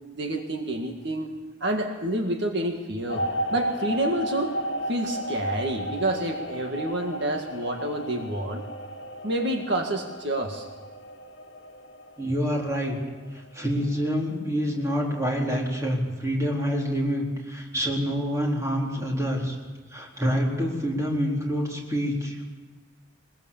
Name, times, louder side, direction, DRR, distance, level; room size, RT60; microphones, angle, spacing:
voice 1, 0.2-1.3 1.6-3.3 3.5-4.5 4.9-8.7 9.2-10.7, right 1 dB, 65° right, 3 dB, 1.9 m, -28 dB
sound 1, 3.1-14.4 14.8-15.1, equal, 65° left, 1.5 m, -34 dB
voice 2, 12.2-13.0 13.3-19.6 19.9-22.5, equal, 15° right, -2 dB, 4.2 m, -27 dB
22.0 x 21.5 x 7.3 m, 1.3 s
head